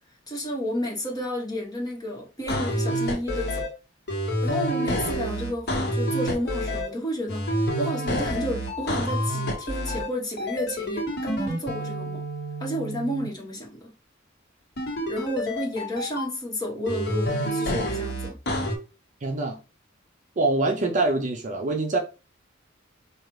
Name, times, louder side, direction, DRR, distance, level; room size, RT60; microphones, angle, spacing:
voice 1, 0.3-3.7 4.4-12.2 12.6-13.9 15.1-18.4, equal, 20° left, 1.3 m, -31 dB
sound 1, 2.5-3.7 4.1-6.9 7.3-10.1 10.4-13.3 14.8-16.3 16.9-18.7, equal, 55° left, 1.1 m, -28 dB
voice 2, 19.2-19.6 20.4-22.0, right 2 dB, 40° right, 0.6 m, -24 dB
4.9 x 2.4 x 3.1 m
head